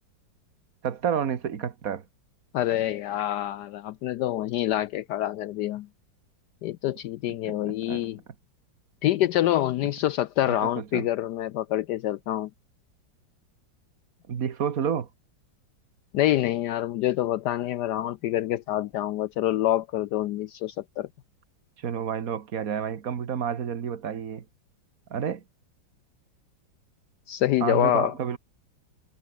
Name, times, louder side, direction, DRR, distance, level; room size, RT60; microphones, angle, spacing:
voice 1, 0.8-2.0 7.4-8.0 10.5-11.1 14.3-15.1 21.8-24.4 25.1-25.4 27.6-28.4, right 7 dB, 50° right, 1.7 m, -30 dB
voice 2, 2.5-5.9 6.6-8.2 9.0-12.5 16.1-21.1 27.3-28.1, left 13 dB, 75° left, 1.1 m, -26 dB
omnidirectional pair, 2.0 m